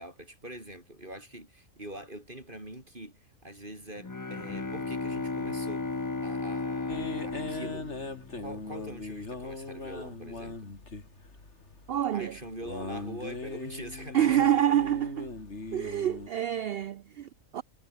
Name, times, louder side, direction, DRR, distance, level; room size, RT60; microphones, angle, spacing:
voice 1, 0.0-5.9 6.2-8.0 8.4-10.6 12.1-14.5, right 1 dB, 35° right, 6.1 m, -44 dB
Bowed string instrument, 4.0-8.8, left 3 dB, 25° left, 0.4 m, -35 dB
sound 1, 6.9-16.3, left 3 dB, 50° left, 3.5 m, -40 dB
voice 2, 11.9-12.4 14.1-15.3 15.7-17.6, right 10 dB, 65° right, 0.6 m, -27 dB
omnidirectional pair, 1.5 m